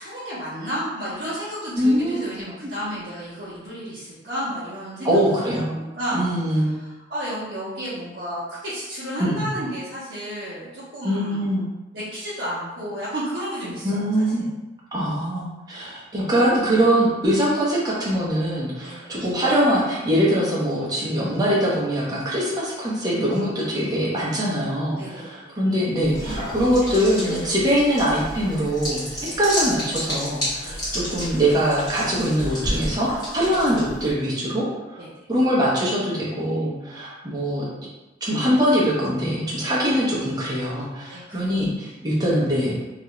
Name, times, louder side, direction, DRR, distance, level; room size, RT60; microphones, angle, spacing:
voice 1, 0.0-6.3 6.8-11.5 11.9-14.3 18.8-19.1 24.9-25.6 29.2-29.4 30.6-30.8 33.5-33.6 35.0-35.1 41.1-41.6, equal, 65° right, -9 dB, 0.6 m, -32 dB
voice 2, 1.8-2.3 2.6-2.7 5.0-5.8 6.1-6.8 9.2-9.5 11.0-11.7 13.8-14.4 14.9-29.1 29.4-33.1 33.3-35.0 35.3-37.6 38.2-42.8, equal, 20° right, -6 dB, 0.6 m, -22 dB
sound 1, 26.0-34.1, equal, 20° left, 0.9 m, -31 dB
2.4 x 2.1 x 2.9 m, 1.1 s
head